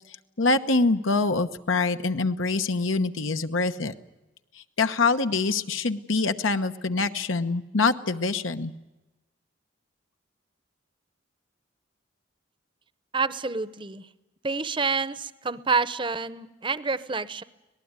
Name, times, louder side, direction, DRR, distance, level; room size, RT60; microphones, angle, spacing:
voice 1, 0.4-3.9 4.5-8.7, left 3 dB, 80° left, 8 dB, 1.1 m, -25 dB
voice 2, 13.1-14.1 14.4-17.4, right 4 dB, 25° right, 15 dB, 0.8 m, -28 dB
25.5 x 19.0 x 9.7 m, 1.1 s
head